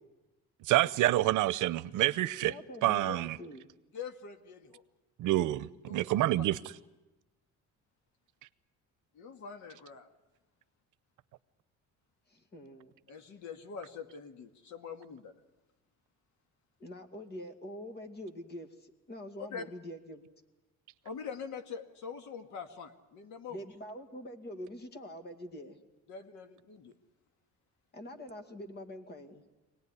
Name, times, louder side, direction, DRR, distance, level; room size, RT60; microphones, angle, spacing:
voice 1, 0.7-2.5 2.8-3.4 5.2-6.6, right 15 dB, 80° right, 0.8 m, -27 dB
voice 2, 2.4-3.7 12.3-12.9 16.8-20.2 23.5-25.8 27.9-29.4, equal, 35° left, 2.3 m, -45 dB
voice 3, 3.9-4.8 5.9-6.2 9.1-10.1 13.1-15.3 19.5-19.6 21.0-23.6 26.1-26.9, left 6 dB, 70° left, 2.1 m, -44 dB
24.5 x 18.5 x 9.8 m
cardioid pair, 155°, 30 cm